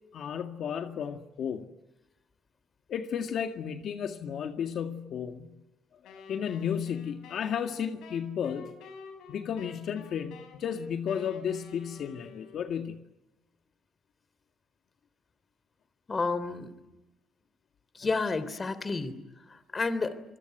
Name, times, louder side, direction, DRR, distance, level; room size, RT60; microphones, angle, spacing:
voice 1, 0.1-1.7 2.9-5.5 6.3-8.7 9.3-13.0, left 8 dB, 70° left, 6 dB, 1.9 m, -33 dB
Wind instrument woodwind instrument, 6.0-12.9, left 5 dB, 85° left, 7.9 m, -50 dB
voice 2, 16.1-16.7 17.9-19.2 19.5-20.2, left 3 dB, 30° left, 15 dB, 3.3 m, -30 dB
26.5 x 21.5 x 9.2 m, 0.99 s
cardioid pair, 90°, 0 cm